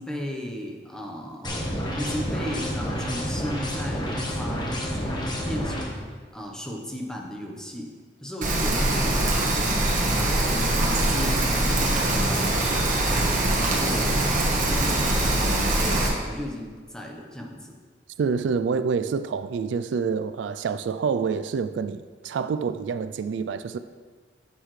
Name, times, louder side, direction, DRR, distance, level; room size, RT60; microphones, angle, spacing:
voice 1, 0.0-1.7 1.9-6.1 6.3-7.9 8.2-9.8 10.1-12.5 12.7-15.4 15.8-17.7, left 1 dB, 5° left, 1.0 m, -35 dB
sound 1, 1.4-5.8, equal, 25° left, 1.2 m, -29 dB
Rain, 8.4-16.1, right 1 dB, 45° right, 1.4 m, -23 dB
voice 2, 18.2-23.8, right 5 dB, 85° right, 0.3 m, -27 dB
9.7 x 6.8 x 3.2 m
head